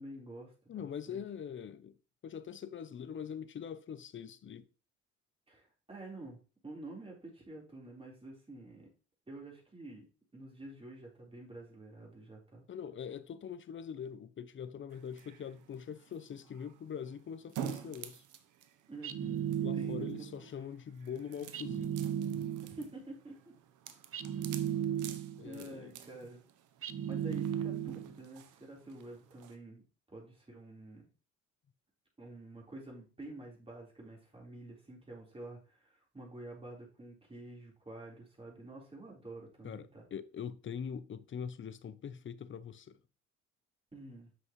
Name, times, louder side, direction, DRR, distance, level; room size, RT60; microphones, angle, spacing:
voice 1, 0.0-1.2 5.5-8.9 9.3-10.1 10.3-12.6 18.9-20.5 22.6-23.3 25.0-25.2 25.4-26.4 27.1-29.8 30.1-31.1 32.2-40.1 43.9-44.3, right 2 dB, 20° right, 3.9 m, -49 dB
voice 2, 0.7-2.0 2.2-4.7 12.7-18.2 19.6-22.0 25.4-25.9 39.6-43.0, left 7 dB, 40° left, 0.6 m, -43 dB
sound 1, 14.9-29.6, right 10 dB, 80° right, 0.8 m, -50 dB
sound 2, 19.0-20.4 21.5-22.9 24.1-25.5 26.8-28.2, right 9 dB, 45° right, 0.6 m, -35 dB
7.8 x 6.2 x 3.1 m
cardioid pair, 90°, 30 cm